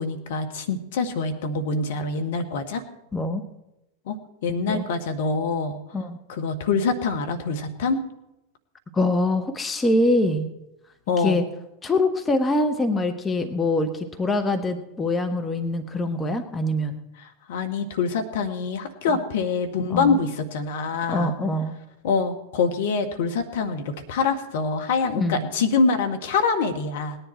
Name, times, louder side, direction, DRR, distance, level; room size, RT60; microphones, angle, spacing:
voice 1, 0.0-2.8 4.1-4.2 4.4-5.8 6.3-8.0 11.1-11.4 17.2-21.3 22.0-27.2, left 4 dB, 55° left, 5 dB, 1.6 m, -25 dB
voice 2, 3.1-3.4 4.7-4.9 5.9-6.2 8.9-10.5 11.2-11.4 11.8-17.0 19.1-19.2 19.9-20.2 21.1-21.7 25.1-25.4, left 2 dB, 15° left, 7 dB, 1.2 m, -24 dB
19.5 x 10.0 x 4.5 m, 0.91 s
figure-of-eight pair, 90°, 0 cm